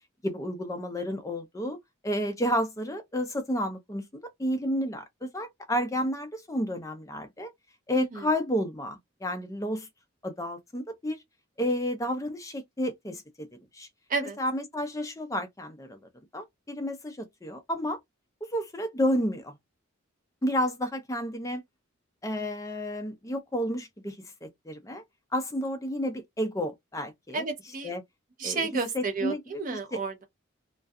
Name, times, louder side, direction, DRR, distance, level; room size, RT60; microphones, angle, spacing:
voice 1, 0.2-1.8 2.0-7.5 7.9-9.9 10.2-11.2 11.6-13.5 13.7-13.9 14.4-16.0 16.3-18.0 18.4-19.6 20.4-21.6 22.2-25.0 25.3-27.4 27.8-28.0 28.4-28.7 28.9-29.4 29.7-30.0, equal, 15° left, 0.4 m, -31 dB
voice 2, 27.3-27.9 28.4-30.2, right 4 dB, 40° right, 0.5 m, -31 dB
2.3 x 2.2 x 2.5 m
head